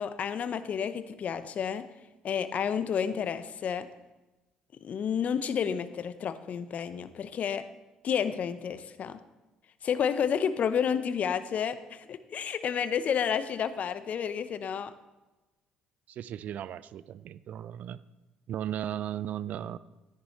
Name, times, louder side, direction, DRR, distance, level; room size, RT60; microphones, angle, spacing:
voice 1, 0.0-1.9 2.2-3.9 4.8-7.7 8.0-9.2 9.8-14.9, left 7 dB, 50° left, 13 dB, 0.7 m, -30 dB
voice 2, 16.1-18.0 18.5-19.8, right 10 dB, 60° right, 17 dB, 0.4 m, -36 dB
13.0 x 10.5 x 3.2 m, 1.1 s
hypercardioid pair, 55°, 3 cm